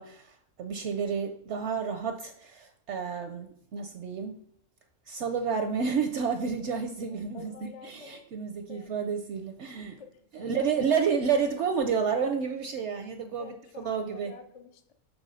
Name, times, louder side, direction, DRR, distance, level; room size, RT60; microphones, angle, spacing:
voice 1, 0.0-4.4 5.1-7.5 7.8-10.0 10.3-14.3, right 6 dB, 70° right, 7 dB, 0.7 m, -30 dB
voice 2, 7.1-8.2 8.7-8.9 9.9-11.0 13.4-14.9, left 6 dB, 75° left, 7 dB, 0.3 m, -48 dB
6.1 x 3.4 x 5.4 m, 0.67 s
omnidirectional pair, 1.6 m